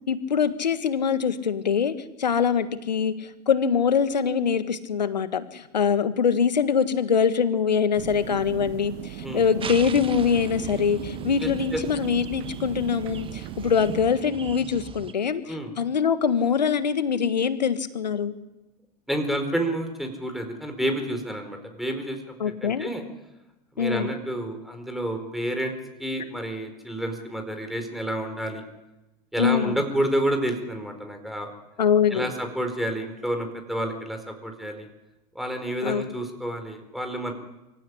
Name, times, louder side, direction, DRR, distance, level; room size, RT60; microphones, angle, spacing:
voice 1, 0.1-18.3 22.4-22.9 23.8-24.1 29.4-29.8 31.8-32.3 35.8-36.0, left 7 dB, 85° left, 12 dB, 1.7 m, -24 dB
sound 1, 8.0-14.0, right 16 dB, 55° right, 1.0 m, -37 dB
sound 2, 9.6-15.1, right 6 dB, 25° right, 1.4 m, -39 dB
voice 2, 11.4-11.8 15.5-15.7 19.1-23.0 23.7-25.7 26.0-28.6 29.3-31.5 32.1-34.9 35.3-37.3, right 1 dB, ahead, 5 dB, 4.5 m, -29 dB
24.5 x 16.0 x 9.9 m, 1.0 s
hypercardioid pair, 90°, 21 cm